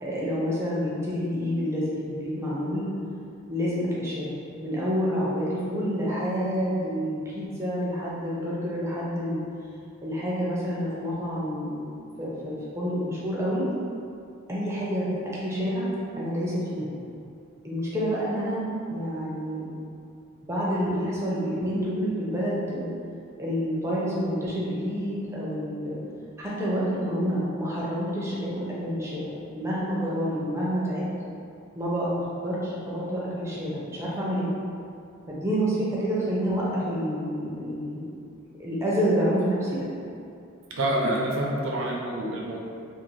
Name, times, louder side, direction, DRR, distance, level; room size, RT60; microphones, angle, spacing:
voice 1, 0.0-2.9 3.5-4.3 4.6-9.4 10.0-11.8 12.2-13.6 14.5-15.1 15.4-15.9 16.2-16.9 17.6-18.6 18.9-19.6 20.4-22.9 23.4-26.0 26.4-31.0 31.8-34.5 35.3-38.0 38.6-39.8, equal, 15° right, -7 dB, 0.5 m, -28 dB
voice 2, 40.7-42.6, right 1 dB, 65° right, -2 dB, 0.5 m, -27 dB
2.6 x 2.5 x 3.1 m, 2.5 s
head